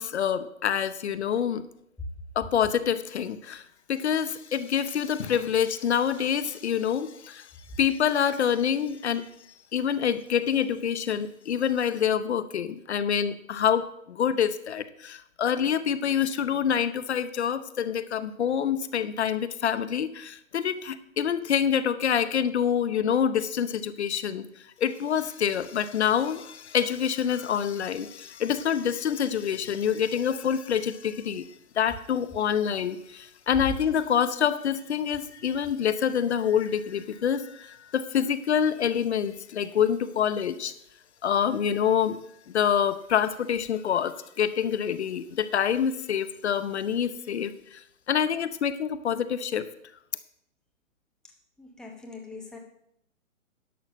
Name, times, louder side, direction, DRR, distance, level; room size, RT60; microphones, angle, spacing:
voice 1, 0.0-1.6 2.4-3.6 3.9-7.5 7.8-9.3 9.7-24.4 24.8-31.5 31.8-40.7 41.2-42.2 42.5-49.6, left 8 dB, 50° left, 13 dB, 0.8 m, -26 dB
voice 2, 51.6-52.6, left 4 dB, ahead, 1 dB, 0.9 m, -43 dB
11.0 x 6.0 x 6.3 m, 0.74 s
figure-of-eight pair, 135°, 41 cm